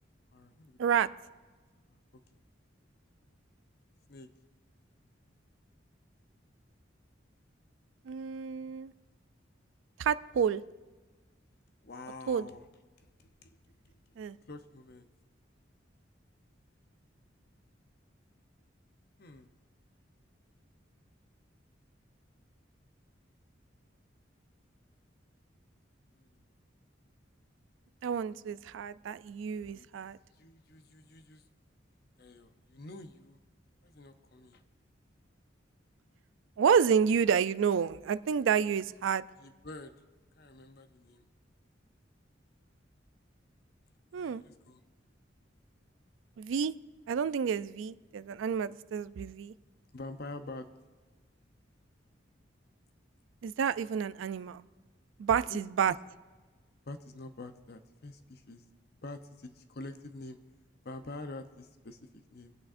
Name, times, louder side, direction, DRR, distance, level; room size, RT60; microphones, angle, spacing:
voice 1, 0.3-0.8 4.1-4.3 11.8-12.6 13.4-13.5 14.5-15.1 19.2-19.5 26.1-26.3 29.7-29.9 30.4-31.4 32.2-33.4 33.8-34.6 39.4-39.9 40.4-41.3 44.1-44.8 49.9-50.7 55.5-55.6 55.9-56.0 56.9-58.6 59.0-60.4 60.8-62.6, left 2 dB, 55° left, 9 dB, 0.7 m, -46 dB
voice 2, 8.1-8.9 10.0-10.6 12.3-12.5 14.2-14.4 28.0-30.2 36.6-39.2 44.1-44.4 46.4-46.7 47.1-49.5 53.4-54.6 55.2-55.9, right 7 dB, 85° right, 17 dB, 0.3 m, -29 dB
25.0 x 8.6 x 2.5 m, 1.3 s
head